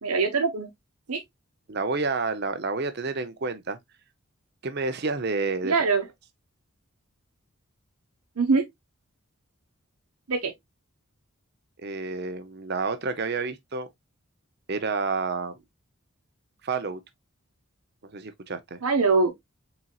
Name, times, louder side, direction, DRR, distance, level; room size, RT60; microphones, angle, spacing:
voice 1, 0.0-0.7 1.1-1.2 5.6-6.1 8.4-8.6 10.3-10.5 18.8-19.3, right 4 dB, 85° right, 0.9 m, -23 dB
voice 2, 1.7-3.8 4.6-5.7 11.8-13.9 14.7-15.6 16.6-17.0 18.1-18.8, right 4 dB, 45° right, 0.7 m, -29 dB
4.4 x 4.0 x 2.3 m
head